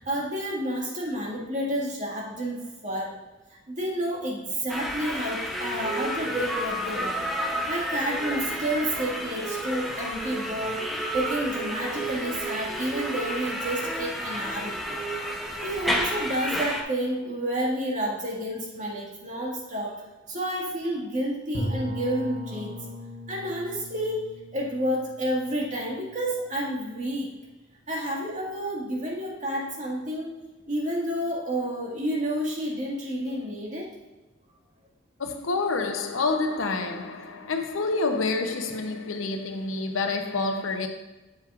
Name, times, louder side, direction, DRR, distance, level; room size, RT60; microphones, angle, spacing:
voice 1, 0.0-3.2 3.7-7.3 7.7-10.8 11.1-14.8 15.6-22.9 23.3-24.3 24.5-27.3 27.9-30.4 30.7-33.9, right 1 dB, 40° right, 1.8 m, -30 dB
sound 1, 4.7-16.8, equal, ahead, 0.8 m, -31 dB
Bowed string instrument, 21.5-26.4, equal, 55° left, 1.3 m, -37 dB
voice 2, 35.2-40.9, left 3 dB, 80° left, 0.8 m, -28 dB
7.5 x 7.3 x 2.5 m
head